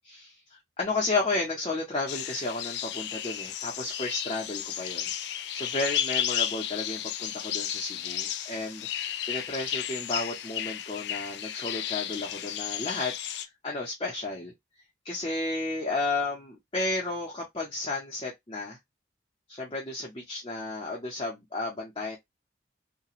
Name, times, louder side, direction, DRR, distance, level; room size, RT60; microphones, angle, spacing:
voice 1, 0.0-5.1 5.5-14.5 15.0-18.8 19.5-22.2, left 2 dB, 25° left, 0.7 m, -33 dB
sound 1, 2.1-13.4, left 10 dB, 70° left, 0.3 m, -33 dB
2.9 x 2.2 x 2.3 m
head